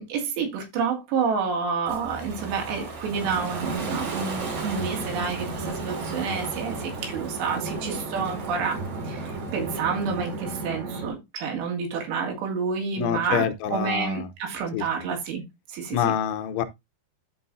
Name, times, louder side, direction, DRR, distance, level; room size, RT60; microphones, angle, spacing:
voice 1, 0.0-15.4 15.7-16.2, right 5 dB, 85° right, 4.2 m, -29 dB
Ocean, 1.9-10.7, right 4 dB, 45° right, 2.9 m, -38 dB
sound 1, 3.1-11.1, right 3 dB, 60° right, 3.6 m, -34 dB
voice 2, 13.0-14.3 14.7-14.9 15.9-16.6, left 9 dB, 80° left, 2.9 m, -26 dB
13.5 x 4.9 x 2.7 m
omnidirectional pair, 4.8 m